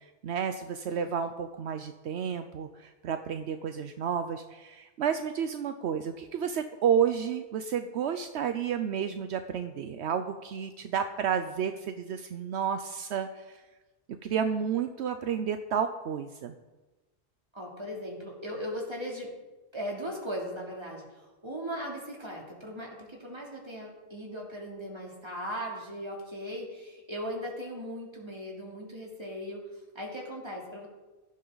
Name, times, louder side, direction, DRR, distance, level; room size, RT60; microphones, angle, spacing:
voice 1, 0.2-13.6 14.2-16.5, right 7 dB, 75° right, 8 dB, 0.9 m, -31 dB
voice 2, 0.9-1.2 17.5-19.3 19.7-29.6 29.9-30.9, equal, 25° right, -2 dB, 3.0 m, -38 dB
16.5 x 11.5 x 4.0 m, 1.2 s
omnidirectional pair, 1.1 m